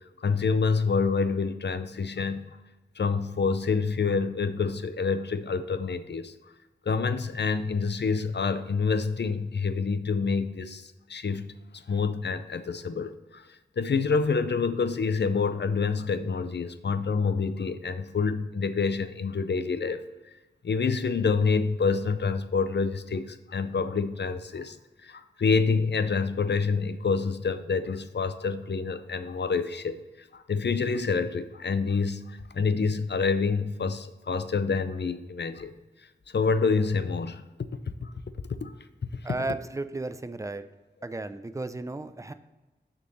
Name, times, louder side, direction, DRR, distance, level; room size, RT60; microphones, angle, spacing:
voice 1, 0.2-2.5 3.0-6.3 6.9-11.5 11.7-20.0 20.6-24.8 25.0-30.0 30.3-35.7 36.3-37.4 37.9-38.1 38.5-38.7, left 5 dB, 70° left, 11 dB, 0.5 m, -27 dB
voice 2, 39.2-40.6 41.0-42.3, right 2 dB, 15° right, 11 dB, 0.5 m, -34 dB
6.7 x 3.7 x 6.3 m, 1.1 s
wide cardioid pair, 45°, 18 cm